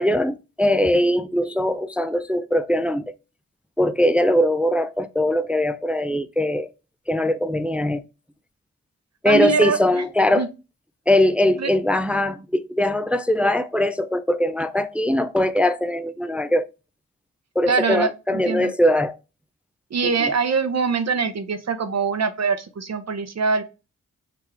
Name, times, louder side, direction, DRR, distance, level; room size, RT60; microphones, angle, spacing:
voice 1, 0.0-3.1 3.8-6.7 7.1-8.0 9.2-10.5 11.1-16.6 17.6-19.2 20.0-20.3, left 1 dB, 5° right, 0.3 m, -21 dB
voice 2, 9.2-10.0 10.3-10.5 11.6-11.7 17.7-18.7 19.9-23.6, right 5 dB, 50° right, 0.8 m, -23 dB
3.8 x 2.9 x 4.4 m
cardioid pair, 45°, 33 cm